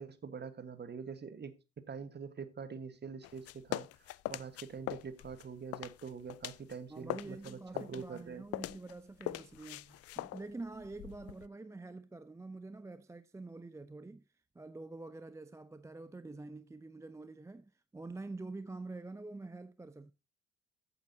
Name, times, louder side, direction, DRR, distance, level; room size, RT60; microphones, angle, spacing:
voice 1, 0.0-1.5 1.9-3.9 4.3-8.4, right 6 dB, 30° right, 1.4 m, -44 dB
sound 1, 3.2-6.8 7.0-11.5, left 16 dB, 45° left, 0.5 m, -42 dB
voice 2, 6.9-14.2 14.5-20.1, right 3 dB, 10° right, 0.5 m, -46 dB
14.0 x 8.4 x 2.7 m
figure-of-eight pair, 50°, 34 cm